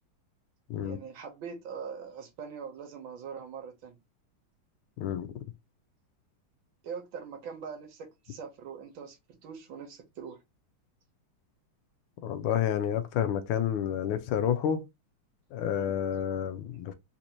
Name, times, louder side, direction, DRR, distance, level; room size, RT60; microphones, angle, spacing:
voice 1, 0.8-4.0 6.8-10.4 15.7-16.0, right 6 dB, 70° right, 1.7 m, -42 dB
voice 2, 5.0-5.3 12.2-14.9 15.5-16.9, left 9 dB, 85° left, 1.5 m, -29 dB
4.1 x 2.6 x 2.9 m
omnidirectional pair, 2.3 m